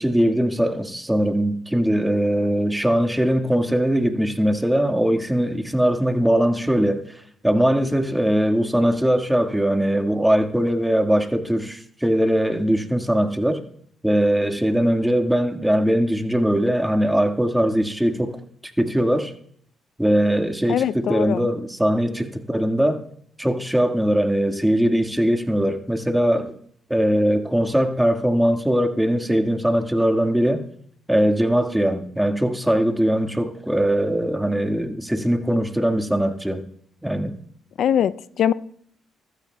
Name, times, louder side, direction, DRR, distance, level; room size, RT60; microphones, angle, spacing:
voice 1, 0.0-7.0 7.4-13.6 14.0-18.4 18.8-19.3 20.0-23.0 23.4-26.6 26.9-30.6 31.1-36.7 37.0-37.4, equal, 5° right, 1.8 m, -21 dB
voice 2, 20.7-21.5 37.8-38.5, left 9 dB, 65° left, 0.5 m, -22 dB
23.5 x 13.0 x 2.3 m
supercardioid pair, 55°, 0 cm